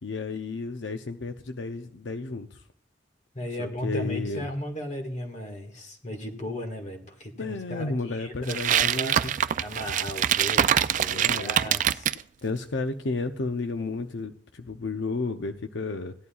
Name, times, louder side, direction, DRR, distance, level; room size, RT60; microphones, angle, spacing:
voice 1, 0.0-2.6 3.6-4.5 7.4-9.4 11.1-11.8 12.4-16.1, left 3 dB, 80° left, 7 dB, 0.6 m, -32 dB
voice 2, 3.3-12.1, equal, 40° left, 5 dB, 1.7 m, -36 dB
sound 1, 8.5-12.2, right 9 dB, 45° right, 0.3 m, -24 dB
16.5 x 11.0 x 2.3 m, 0.63 s
head